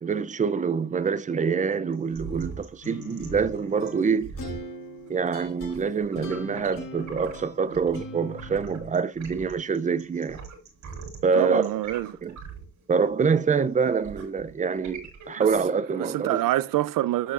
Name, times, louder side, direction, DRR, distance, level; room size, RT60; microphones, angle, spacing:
voice 1, 0.0-4.3 5.1-10.4 11.2-11.7 12.2-12.4 12.9-16.4, right 5 dB, 25° right, 0.4 m, -25 dB
sound 1, 1.9-8.1 8.3-15.6, right 5 dB, 60° right, 6.0 m, -42 dB
sound 2, 2.8-8.9, left 3 dB, 85° left, 5.6 m, -41 dB
voice 2, 11.3-12.1 15.4-15.5 15.9-17.3, right 14 dB, 90° right, 0.5 m, -26 dB
12.5 x 8.0 x 2.4 m
wide cardioid pair, 175°, 32 cm